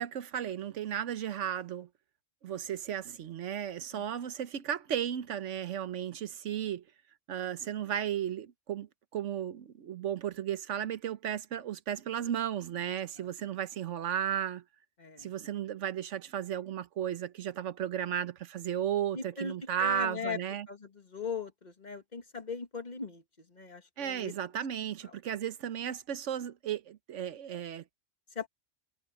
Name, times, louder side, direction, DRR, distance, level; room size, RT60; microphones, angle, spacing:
voice 1, 0.0-1.9 2.4-6.8 7.3-14.6 15.2-20.7 24.0-27.8, right 10 dB, 90° right, 1.2 m, -34 dB
voice 2, 15.0-15.3 19.1-20.4 20.7-24.3 25.0-25.2 28.3-28.5, left 5 dB, 40° left, 1.6 m, -39 dB
omnidirectional pair, 1.2 m